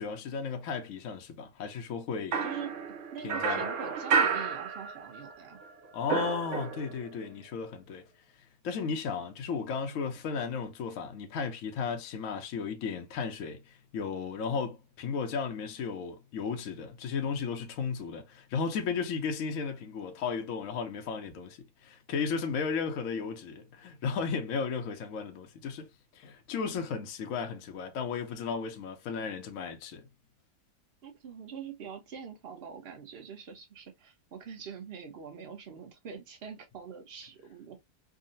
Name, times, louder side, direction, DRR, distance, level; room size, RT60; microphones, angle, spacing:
voice 1, 0.0-2.4 3.2-3.6 5.9-8.0 8.6-25.9 26.1-30.1, left 5 dB, 65° left, 0.8 m, -34 dB
sound 1, 2.3-5.3 5.6-7.1, right 6 dB, 85° right, 0.6 m, -31 dB
voice 2, 2.4-2.8 3.1-5.6 31.0-37.8, right 7 dB, 50° right, 0.8 m, -44 dB
3.7 x 2.1 x 2.5 m
omnidirectional pair, 1.9 m